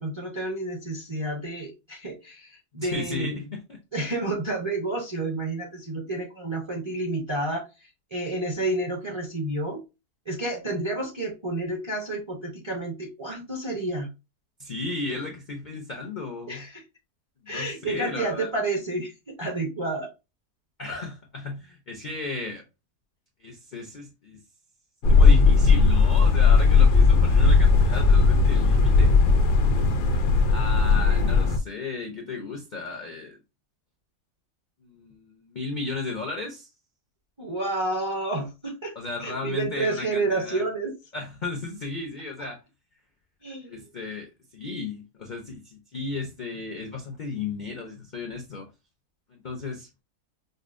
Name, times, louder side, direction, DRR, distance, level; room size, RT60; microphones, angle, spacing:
voice 1, 0.0-3.4 3.9-9.8 10.3-14.1 15.1-15.2 16.5-16.8 17.5-20.1 37.4-38.9 39.2-40.9 43.4-43.8, right 2 dB, 30° right, 0.6 m, -30 dB
voice 2, 2.8-3.8 14.6-16.7 17.4-18.5 20.8-22.6 23.4-24.4 25.1-29.1 30.5-33.4 34.8-36.7 39.0-40.6 41.1-42.6 43.7-48.7 49.3-49.9, left 3 dB, 55° left, 0.5 m, -35 dB
sound 1, 25.0-31.6, left 4 dB, 85° left, 1.3 m, -17 dB
5.3 x 2.0 x 2.5 m
omnidirectional pair, 1.7 m